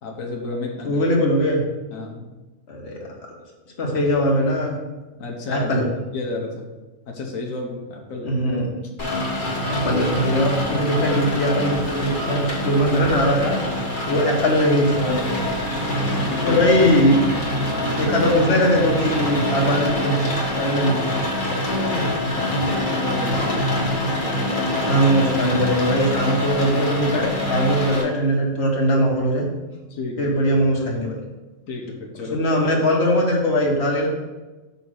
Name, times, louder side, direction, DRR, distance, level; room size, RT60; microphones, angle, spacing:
voice 1, 0.0-1.0 1.9-2.3 5.2-6.7 7.1-8.4 9.0-9.2 14.0-14.2 16.2-16.6 17.7-18.1 21.7-23.8 24.2-25.1 29.9-30.3 31.7-32.3, left 3 dB, 90° left, 0 dB, 1.3 m, -31 dB
voice 2, 0.8-1.6 2.7-3.0 3.8-4.7 5.5-5.8 8.2-8.8 9.7-13.6 14.1-15.6 16.4-17.2 18.0-20.2 20.6-21.0 24.9-29.4 30.2-31.2 32.3-34.1, equal, 55° left, -1 dB, 1.6 m, -20 dB
Rain, 9.0-28.0, left 1 dB, 40° left, 1.4 m, -25 dB
sound 1, 15.5-20.5, right 2 dB, 65° right, 0.9 m, -33 dB
5.6 x 4.1 x 6.2 m, 1.2 s
omnidirectional pair, 1.3 m